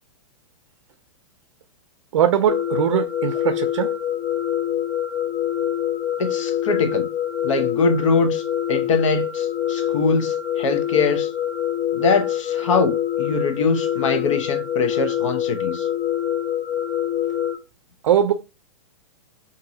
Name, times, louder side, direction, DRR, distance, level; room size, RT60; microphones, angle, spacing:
voice 1, 2.1-3.9 18.0-18.3, right 9 dB, 75° right, 0.5 m, -20 dB
sound 1, 2.5-17.6, left 11 dB, 45° left, 1.0 m, -25 dB
voice 2, 6.2-7.1 7.4-8.4 8.7-11.3 11.9-15.9, left 4 dB, 75° left, 0.8 m, -22 dB
2.9 x 2.6 x 2.6 m
supercardioid pair, 180°, 16 cm